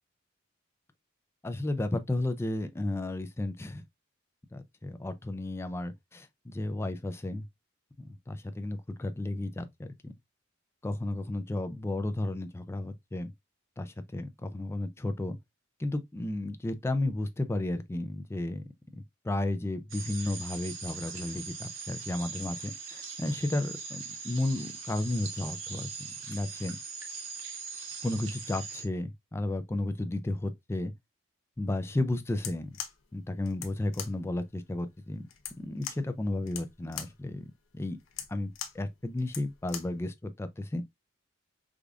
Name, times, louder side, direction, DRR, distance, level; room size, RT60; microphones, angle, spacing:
voice 1, 1.4-3.8 4.5-7.4 8.0-10.1 10.8-13.3 13.8-15.4 15.8-18.6 19.2-26.8 28.0-30.9 31.6-32.7 33.1-35.2 35.6-37.5 37.7-38.0 38.3-41.0, left 2 dB, 15° left, 0.3 m, -33 dB
sound 1, 19.9-28.8, right 5 dB, 70° right, 0.9 m, -41 dB
sound 2, 32.3-40.0, left 9 dB, 80° left, 0.6 m, -43 dB
4.9 x 2.5 x 2.3 m
head